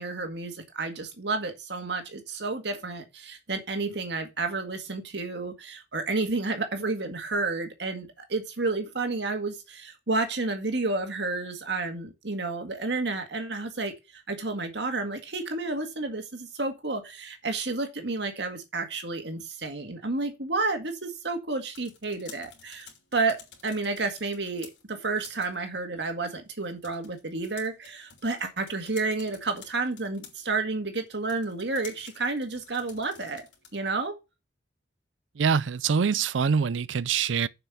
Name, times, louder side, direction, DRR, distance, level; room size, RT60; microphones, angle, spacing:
voice 1, 0.0-34.2, right 3 dB, 65° right, 1.8 m, -31 dB
sound 1, 21.5-34.0, left 7 dB, 75° left, 3.2 m, -52 dB
voice 2, 35.4-37.5, right 6 dB, 80° right, 0.4 m, -24 dB
7.3 x 5.8 x 7.1 m
head